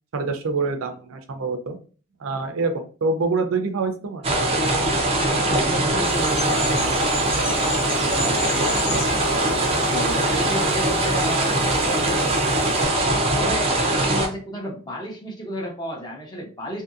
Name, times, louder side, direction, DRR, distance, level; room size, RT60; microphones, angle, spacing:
voice 1, 0.1-1.8 2.2-4.2, right 3 dB, 75° right, 6 dB, 0.5 m, -25 dB
sound 1, 4.2-14.3, right 1 dB, 30° right, 0.5 m, -21 dB
voice 2, 5.2-9.2 9.9-12.9 13.3-16.8, equal, 20° left, -1 dB, 0.7 m, -33 dB
sound 2, 6.0-12.8, left 2 dB, 85° left, 1.5 m, -35 dB
2.7 x 2.6 x 2.5 m, 0.39 s
head